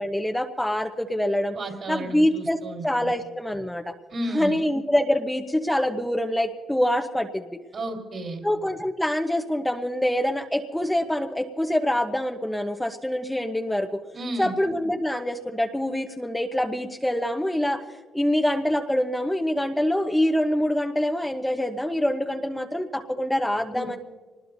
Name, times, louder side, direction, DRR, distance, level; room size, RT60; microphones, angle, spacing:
voice 1, 0.0-1.6 1.9-2.6 2.8-3.9 4.3-7.6 8.4-14.0 14.4-17.8 18.1-24.0, left 1 dB, 5° left, 4 dB, 0.9 m, -25 dB
voice 2, 1.5-3.1 4.1-4.6 7.7-8.4 14.1-14.5 23.7-24.0, right 1 dB, 50° right, 2 dB, 4.0 m, -33 dB
25.0 x 20.0 x 2.7 m, 1.4 s
cardioid pair, 90°, 0 cm